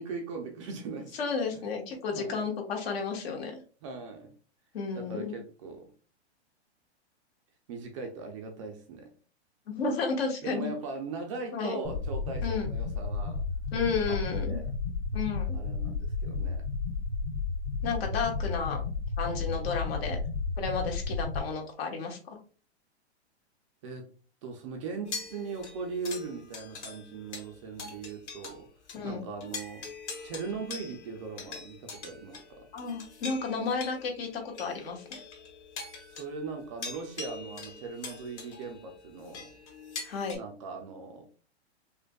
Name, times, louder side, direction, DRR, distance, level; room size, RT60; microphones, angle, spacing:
voice 1, 0.0-2.5 3.8-4.3 4.9-5.9 7.7-9.1 10.4-13.4 14.1-14.7 15.5-16.7 23.8-24.1 24.4-28.7 29.0-29.9 30.2-32.7 36.1-39.5 40.3-41.3, right 4 dB, 30° right, 0.4 m, -40 dB
voice 2, 1.2-3.6 4.7-5.3 9.7-10.7 11.5-11.8 12.4-12.7 13.7-14.6 15.1-15.6 17.8-18.8 19.2-20.2 20.6-22.2 28.9-29.2 32.7-35.2 40.0-40.4, left 4 dB, 60° left, 1.2 m, -32 dB
sound 1, 11.8-21.4, left 4 dB, 30° left, 1.4 m, -32 dB
sound 2, 25.1-28.6 28.9-29.0 29.4-40.4, left 4 dB, 75° left, 1.5 m, -43 dB
5.0 x 2.2 x 2.2 m
hypercardioid pair, 150°, 34 cm